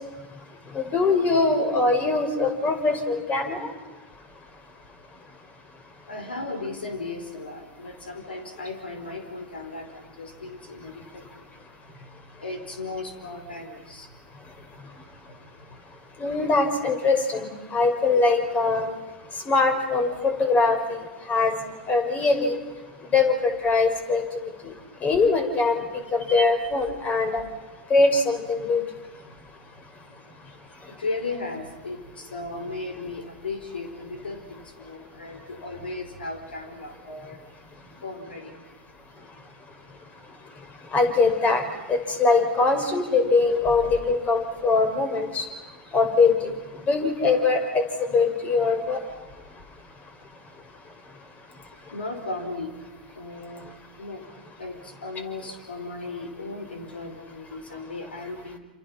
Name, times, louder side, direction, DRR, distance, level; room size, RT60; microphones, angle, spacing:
voice 1, 0.7-3.7 16.2-18.9 19.5-21.0 21.3-21.5 21.9-22.6 23.1-24.2 24.6-24.7 25.0-25.8 26.1-27.4 27.9-28.8 40.9-41.6 41.9-45.4 45.9-46.3 46.9-47.8 48.1-49.0, left 3 dB, 30° left, 6 dB, 5.6 m, -22 dB
voice 2, 6.1-11.5 12.0-14.2 15.3-15.8 29.2-29.4 29.7-30.5 30.9-38.5 51.9-52.7 53.1-53.7 54.0-54.3 54.6-58.6, left 3 dB, 90° left, 7 dB, 4.9 m, -36 dB
29.5 x 28.5 x 6.0 m, 1.2 s
hypercardioid pair, 100°, 5 cm